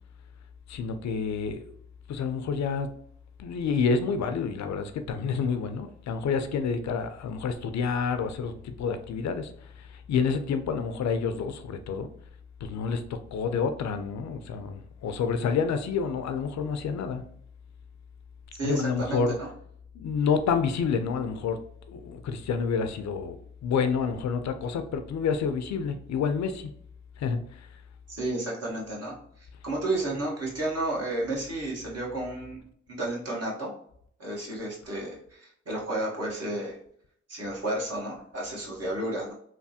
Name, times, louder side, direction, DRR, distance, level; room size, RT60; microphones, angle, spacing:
voice 1, 0.7-1.6 2.1-2.9 3.4-9.5 10.1-12.1 12.6-17.2 18.6-19.4 20.0-21.6 21.9-23.4 23.6-26.7 27.2-27.4, left 5 dB, 70° left, 9 dB, 0.4 m, -28 dB
voice 2, 18.6-19.5 28.1-29.1 29.6-32.6 32.9-33.7 34.2-36.8 37.3-39.3, right 2 dB, 55° right, -3 dB, 1.3 m, -32 dB
3.2 x 2.0 x 2.7 m, 0.65 s
supercardioid pair, 45°, 29 cm